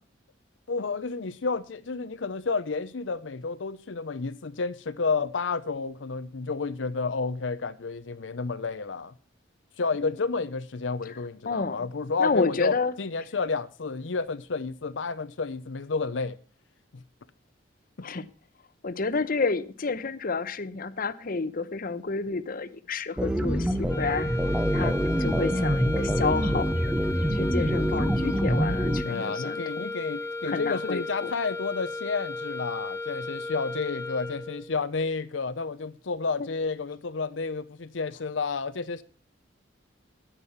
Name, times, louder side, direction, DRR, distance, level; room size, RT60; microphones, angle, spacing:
voice 1, 0.7-9.1 9.8-16.4 16.9-17.0 29.0-39.0, left 4 dB, 85° left, 0.7 m, -31 dB
voice 2, 11.5-11.9 12.2-12.9 18.0-18.3 18.8-24.3 24.7-26.7 27.2-29.9 30.4-31.3, left 4 dB, 50° left, 0.8 m, -30 dB
sound 1, 23.2-29.0, equal, 5° right, 0.7 m, -26 dB
sound 2, 23.8-34.7, left 2 dB, 15° left, 1.3 m, -35 dB
10.0 x 8.9 x 5.7 m
head